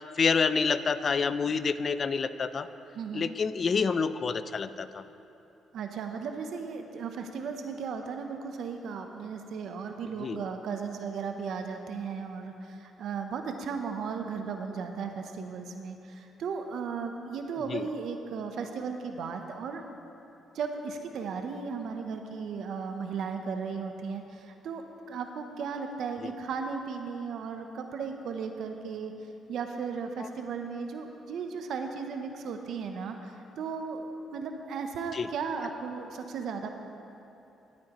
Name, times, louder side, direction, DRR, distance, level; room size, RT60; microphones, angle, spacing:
voice 1, 0.2-2.7 3.1-5.0 10.2-10.4 17.7-17.9 30.2-30.3 35.1-35.3, left 5 dB, 45° left, 13 dB, 0.4 m, -28 dB
voice 2, 2.9-3.3 5.7-19.8 20.5-24.8 25.1-29.1 29.5-36.7, right 5 dB, 70° right, 5 dB, 0.7 m, -36 dB
17.5 x 8.6 x 3.0 m, 2.9 s
cardioid pair, 90°, 0 cm